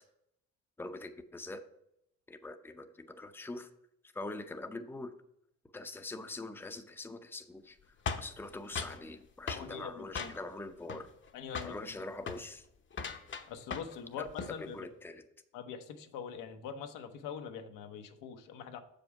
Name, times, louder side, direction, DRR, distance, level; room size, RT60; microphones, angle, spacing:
voice 1, 0.8-1.6 2.3-3.7 4.1-5.1 5.7-11.1 11.6-12.7 14.2-15.2, left 2 dB, 5° left, 7 dB, 0.7 m, -43 dB
sound 1, 8.1-9.0 9.5-9.7 10.1-10.6 10.9-11.3 11.5-11.8 12.2-12.4 12.9-14.0 14.3-14.6, left 5 dB, 35° left, 0.9 m, -39 dB
voice 2, 9.5-10.3 11.3-11.9 13.5-14.9 15.5-18.8, left 7 dB, 70° left, 7 dB, 0.9 m, -43 dB
6.8 x 5.3 x 4.8 m, 0.79 s
supercardioid pair, 65°, 33 cm